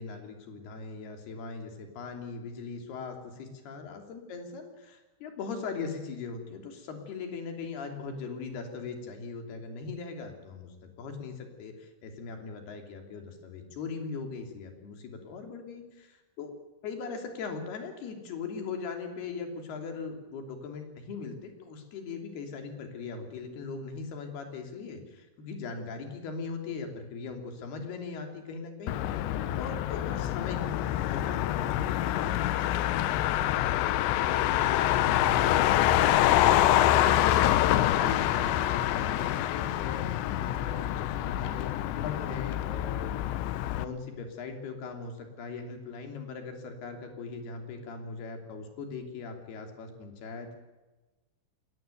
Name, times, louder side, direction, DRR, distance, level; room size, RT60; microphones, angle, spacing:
voice 1, 0.0-16.5 16.8-29.0 29.5-33.8 34.3-36.5 36.9-43.1 43.8-50.6, left 4 dB, 60° left, 4 dB, 5.0 m, -40 dB
Motor vehicle (road), 28.9-43.8, left 13 dB, 80° left, 3.0 m, -26 dB
21.0 x 18.0 x 9.2 m, 1.2 s
omnidirectional pair, 5.3 m